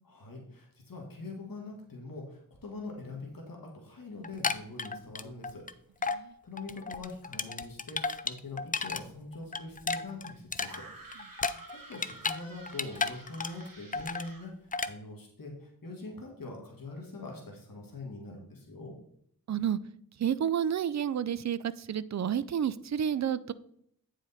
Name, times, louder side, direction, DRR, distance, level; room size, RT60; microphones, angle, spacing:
voice 1, 0.0-5.7 6.0-10.9 11.9-18.9, left 2 dB, 70° left, 0 dB, 1.7 m, -43 dB
sound 1, 4.2-5.7 6.0-6.2 6.6-9.0 9.3-12.4 12.7-13.7 13.9-14.3 14.7-14.9, left 4 dB, 25° left, 0.4 m, -33 dB
sound 2, 10.6-14.5, right 2 dB, 70° right, 2.0 m, -50 dB
voice 2, 19.5-19.8 20.2-23.5, right 9 dB, 50° right, 17 dB, 0.4 m, -30 dB
9.1 x 4.9 x 4.1 m, 0.69 s
wide cardioid pair, 70°, 36 cm